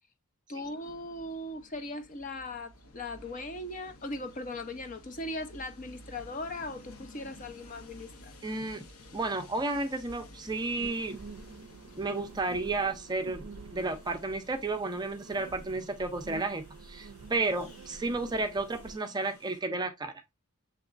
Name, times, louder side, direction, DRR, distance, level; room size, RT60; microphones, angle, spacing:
voice 1, 0.5-8.3, left 2 dB, 35° left, 0.6 m, -39 dB
Train, 0.6-19.6, left 1 dB, 75° left, 1.0 m, -54 dB
voice 2, 8.4-8.9 9.1-11.2 12.0-20.1, right 3 dB, 20° right, 0.5 m, -32 dB
sound 1, 10.5-19.0, right 4 dB, 70° right, 0.4 m, -48 dB
6.9 x 2.9 x 2.4 m
head